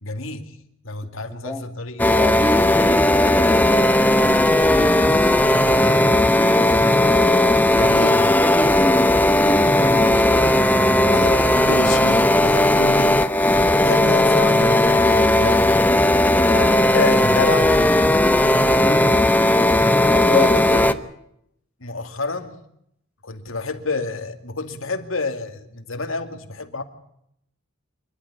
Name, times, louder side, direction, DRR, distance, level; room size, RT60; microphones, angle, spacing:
voice 1, 0.0-0.6 0.8-2.0 4.9-6.2 7.7-8.3 11.1-13.3 13.8-15.9 16.5-17.9 20.3-21.0 21.8-22.6 23.2-26.8, left 3 dB, 75° left, 6 dB, 2.4 m, -29 dB
voice 2, 1.3-1.6 2.2-5.2 6.1-7.1 7.8-8.1 8.4-10.5 18.6-19.1 20.1-20.5 20.8-20.9, equal, 5° right, 6 dB, 2.5 m, -29 dB
sound 1, 2.0-20.9, left 1 dB, 10° left, 0.9 m, -16 dB
27.0 x 12.0 x 10.0 m, 0.76 s
head